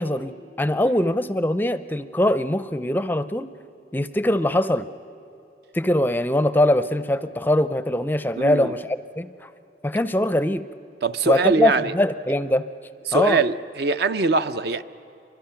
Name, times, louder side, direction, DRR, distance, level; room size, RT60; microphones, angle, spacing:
voice 1, 0.0-3.5 3.9-4.9 5.7-9.5 9.8-10.6 11.3-12.6 13.1-13.4, left 1 dB, 10° left, 0.4 m, -22 dB
voice 2, 8.4-8.7 11.0-11.9 13.1-14.8, right 3 dB, 60° right, 0.6 m, -22 dB
28.5 x 24.0 x 5.8 m
head